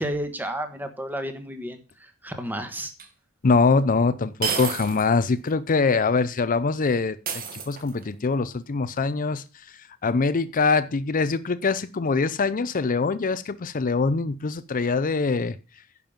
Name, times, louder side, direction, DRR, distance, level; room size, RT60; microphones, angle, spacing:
voice 1, 0.0-2.9, right 1 dB, 10° right, 1.4 m, -32 dB
sound 1, 3.0-3.1 4.4-5.1 5.5-5.6 7.3-8.1, right 6 dB, 40° right, 1.6 m, -30 dB
voice 2, 3.4-9.4 10.0-15.6, left 4 dB, 35° left, 0.5 m, -23 dB
10.5 x 5.4 x 7.1 m
head